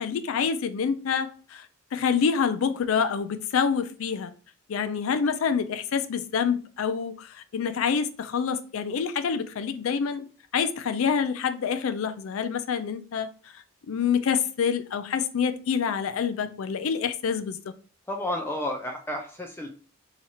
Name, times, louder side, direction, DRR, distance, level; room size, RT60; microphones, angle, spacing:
voice 1, 0.0-1.7 1.9-4.3 4.7-10.2 10.5-13.3 13.9-17.6, left 6 dB, 75° left, 0.4 m, -27 dB
voice 2, 18.1-19.7, left 1 dB, 10° left, 0.4 m, -31 dB
2.9 x 2.4 x 4.1 m
head